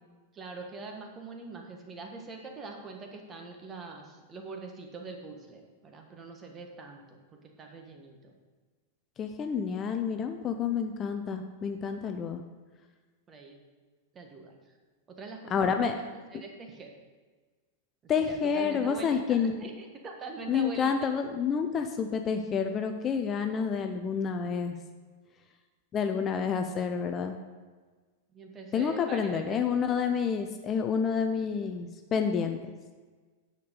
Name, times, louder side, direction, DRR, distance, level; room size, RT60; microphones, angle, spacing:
voice 1, 0.3-8.3 13.3-13.6 14.1-14.7 15.1-16.9 18.0-20.9 28.3-29.7, right 3 dB, 25° right, 3 dB, 1.4 m, -43 dB
voice 2, 9.2-12.4 15.5-16.0 18.1-19.6 20.5-24.8 25.9-27.4 28.7-32.6, left 6 dB, 25° left, 6 dB, 0.6 m, -29 dB
9.3 x 6.7 x 5.3 m, 1.4 s
figure-of-eight pair, 95°, 0 cm